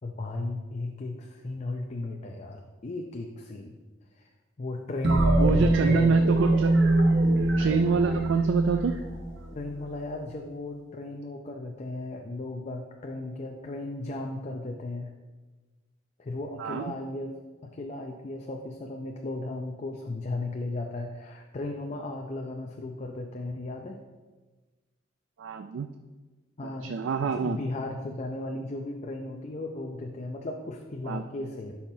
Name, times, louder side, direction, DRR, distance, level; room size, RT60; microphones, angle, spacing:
voice 1, 0.0-3.8 4.1-4.3 4.6-6.2 9.5-15.1 16.2-17.3 17.6-24.0 26.6-26.9 27.3-31.8, left 2 dB, 40° left, 2 dB, 0.5 m, -35 dB
sound 1, 5.0-9.7, right 2 dB, 65° right, 0.9 m, -23 dB
voice 2, 5.4-6.7 7.6-8.9 16.6-16.9 25.4-25.9 26.8-27.6 31.1-31.2, right 6 dB, 85° right, 8 dB, 0.3 m, -27 dB
10.5 x 5.7 x 2.7 m, 1.3 s
head